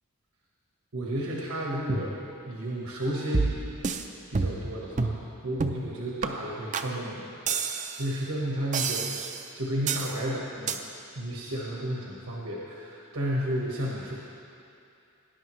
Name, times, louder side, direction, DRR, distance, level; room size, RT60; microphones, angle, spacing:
voice 1, 0.9-3.7 4.3-7.3 8.0-9.1 9.5-10.8 11.1-14.1, right 1 dB, 75° right, -3 dB, 1.4 m, -32 dB
sound 1, 3.3-4.0 4.3-4.7 5.0-5.2 5.6-5.9 6.2-6.3 6.7-6.9 7.5-8.1 8.7-9.4 9.9-10.2 10.7-10.8, right 4 dB, 35° right, 0.5 m, -28 dB
18.5 x 10.0 x 3.2 m, 2.6 s
head